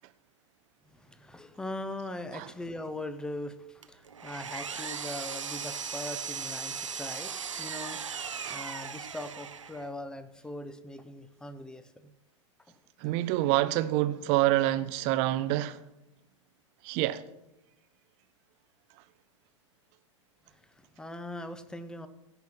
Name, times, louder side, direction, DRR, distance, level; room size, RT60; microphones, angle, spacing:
voice 1, 0.9-12.1 12.7-12.8 20.5-22.1, left 1 dB, 5° left, 0.8 m, -41 dB
Power tool, 3.8-9.9, right 6 dB, 80° right, 0.8 m, -38 dB
voice 2, 13.0-15.8 16.8-17.2, right 15 dB, 40° right, 0.7 m, -27 dB
16.5 x 5.8 x 6.1 m
figure-of-eight pair, 95°, 16 cm